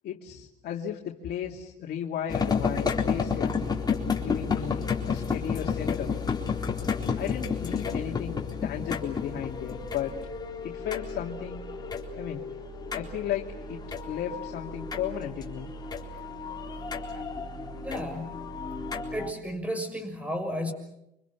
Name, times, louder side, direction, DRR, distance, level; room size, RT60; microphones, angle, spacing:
voice 1, 0.0-3.7 4.1-6.1 7.2-10.2 10.6-11.7 12.2-12.4 12.9-15.7, left 9 dB, 70° left, 0 dB, 2.4 m, -35 dB
sound 1, 2.3-19.3, left 5 dB, 25° left, 4.0 m, -31 dB
voice 2, 17.8-18.6 19.1-20.7, equal, 10° right, 7 dB, 6.3 m, -33 dB
29.5 x 25.5 x 7.0 m, 0.84 s
cardioid pair, 110°, 17 cm